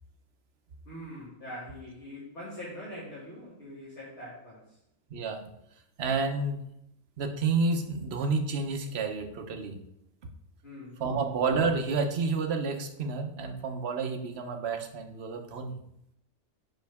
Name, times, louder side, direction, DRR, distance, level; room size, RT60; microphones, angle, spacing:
voice 1, 0.8-4.8 10.6-11.3, left 1 dB, 55° left, -8 dB, 2.5 m, -43 dB
voice 2, 5.1-5.4 6.0-6.7 7.2-9.8 11.0-15.8, right 4 dB, 55° right, 5 dB, 1.1 m, -30 dB
7.8 x 5.8 x 3.5 m, 0.78 s
omnidirectional pair, 1.4 m